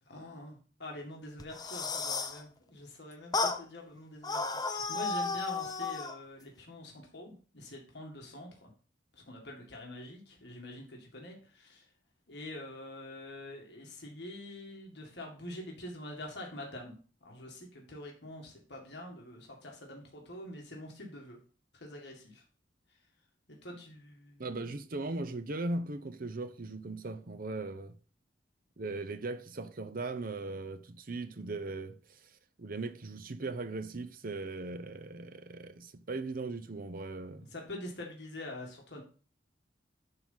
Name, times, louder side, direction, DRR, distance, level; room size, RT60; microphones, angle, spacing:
voice 1, 0.0-8.7 9.1-11.9 12.3-16.9 17.2-21.4 21.7-22.4 22.9-23.0 23.5-24.5 37.5-39.0, left 1 dB, 60° left, 2.0 m, -45 dB
sound 1, 1.4-2.4 3.3-3.6 4.2-6.2, left 4 dB, 20° left, 0.7 m, -33 dB
voice 2, 24.4-28.0 28.8-32.2 32.6-37.5, right 2 dB, 50° right, 0.7 m, -38 dB
10.5 x 3.9 x 5.6 m
head